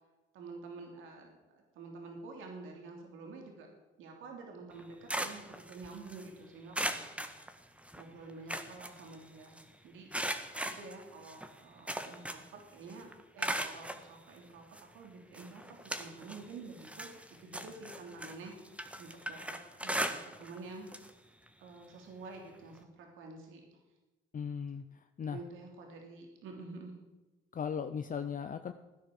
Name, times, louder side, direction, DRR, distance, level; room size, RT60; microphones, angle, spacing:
voice 1, 0.3-3.7 4.0-7.3 8.0-9.6 9.8-10.1 10.6-14.6 14.9-17.1 17.4-20.9 21.6-23.8 25.3-26.9, right 3 dB, 90° right, 2 dB, 3.3 m, -49 dB
sound 1, 4.7-6.3 6.7-8.0 8.3-9.6 10.1-12.6 12.9-14.0 14.7-14.8 15.3-16.5 16.8-20.6 20.9-21.1 21.5-21.6 22.8-22.9, right 1 dB, 5° right, 1.7 m, -38 dB
voice 2, 24.3-25.4 27.5-28.7, left 7 dB, 40° left, 9 dB, 0.8 m, -37 dB
16.5 x 10.0 x 7.3 m, 1.1 s
cardioid pair, 90°, 20 cm